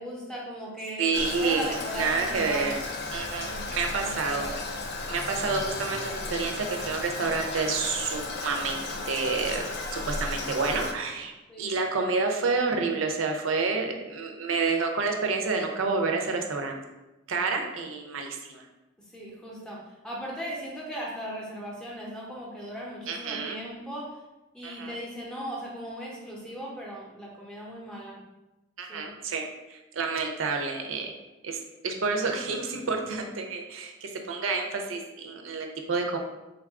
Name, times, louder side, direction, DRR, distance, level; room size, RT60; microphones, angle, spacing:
voice 1, 0.0-2.7 3.5-3.6 3.9-4.6 11.5-11.7 19.1-24.2 24.5-28.2 28.9-29.1, equal, 5° left, -4 dB, 0.6 m, -38 dB
voice 2, 1.0-2.8 3.1-4.5 5.1-9.7 9.9-11.3 11.6-16.8 17.3-18.6 23.1-23.6 24.6-25.0 28.8-31.1 31.4-36.2, right 4 dB, 85° right, 3 dB, 0.5 m, -29 dB
Toilet flush, 1.1-10.9, left 3 dB, 55° left, 0.4 m, -34 dB
3.6 x 2.3 x 3.5 m, 1.0 s
head